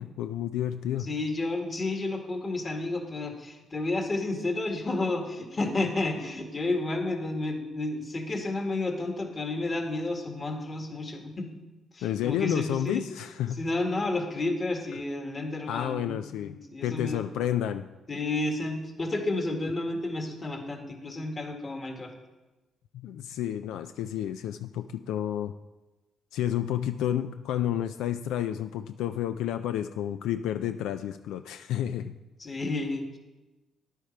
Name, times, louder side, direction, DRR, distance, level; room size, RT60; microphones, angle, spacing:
voice 1, 0.0-1.1 12.0-13.6 15.7-16.6 16.8-17.8 22.9-25.5 26.3-32.2, left 11 dB, 90° left, 10 dB, 0.3 m, -30 dB
voice 2, 1.0-11.5 11.9-13.0 13.5-17.2 18.1-22.1 32.4-33.2, left 2 dB, 30° left, 3 dB, 1.8 m, -31 dB
10.0 x 8.1 x 4.5 m, 1.1 s
cardioid pair, 90°, 0 cm